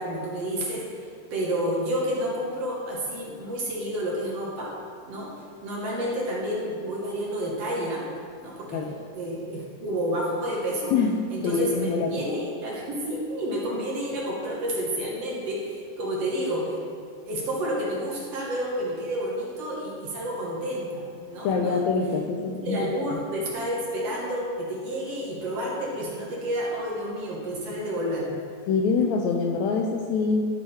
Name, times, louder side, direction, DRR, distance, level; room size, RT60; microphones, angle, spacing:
voice 1, 0.0-4.8 5.0-5.3 5.6-8.0 8.4-8.9 9.1-10.9 11.3-16.8 17.3-21.9 22.6-28.4, equal, 60° right, -4 dB, 2.1 m, -30 dB
voice 2, 11.4-12.3 21.4-23.2 28.7-30.5, left 4 dB, 80° left, 3 dB, 1.7 m, -25 dB
13.0 x 4.7 x 4.3 m, 2.2 s
omnidirectional pair, 3.6 m